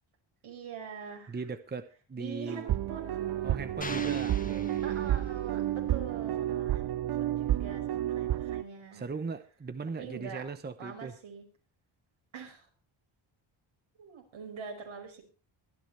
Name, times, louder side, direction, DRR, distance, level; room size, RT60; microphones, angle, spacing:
voice 1, 0.4-1.4 2.2-3.6 4.8-9.1 10.0-10.4 10.8-11.4 12.3-12.7 14.0-15.3, right 6 dB, 70° right, 5.6 m, -44 dB
voice 2, 1.3-2.7 3.4-5.3 8.9-11.2, right 4 dB, 20° right, 0.8 m, -39 dB
sound 1, 2.5-8.6, right 12 dB, 50° right, 0.6 m, -31 dB
sound 2, 3.8-5.5, left 3 dB, 15° left, 1.6 m, -43 dB
24.0 x 10.5 x 3.3 m
cardioid pair, 115°, 50 cm